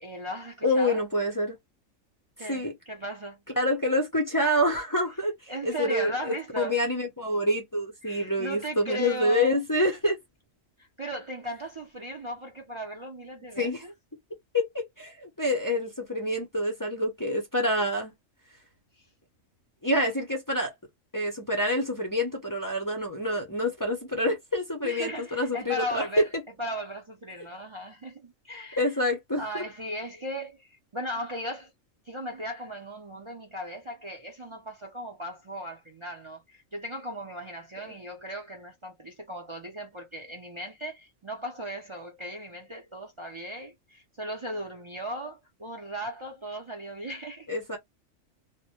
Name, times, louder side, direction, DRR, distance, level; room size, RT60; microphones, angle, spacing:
voice 1, 0.0-1.0 2.4-3.4 5.5-6.8 8.0-9.6 10.8-13.9 19.0-19.1 24.8-26.3 26.6-28.9 29.4-31.7 32.1-47.5, equal, 50° right, 0.3 m, -37 dB
voice 2, 0.6-1.6 2.4-2.7 3.6-10.2 13.6-13.8 14.5-18.1 19.8-20.7 21.1-26.2 28.8-29.6 37.8-38.0 47.5-47.8, left 1 dB, 30° left, 0.4 m, -27 dB
2.1 x 2.1 x 2.8 m
omnidirectional pair, 1.4 m